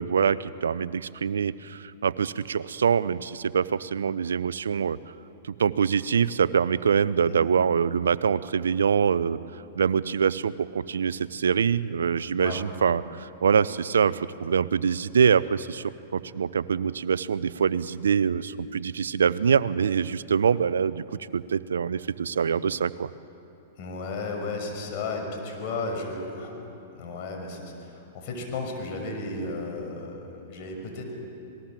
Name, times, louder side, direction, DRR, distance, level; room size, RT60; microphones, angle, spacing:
voice 1, 0.0-5.0 5.4-9.4 9.7-21.0 21.3-23.1, right 7 dB, 80° right, 17 dB, 0.6 m, -24 dB
voice 2, 23.8-26.6 26.9-31.0, left 3 dB, 50° left, 2 dB, 6.0 m, -34 dB
26.5 x 19.5 x 7.6 m, 2.9 s
hypercardioid pair, 115°, 0 cm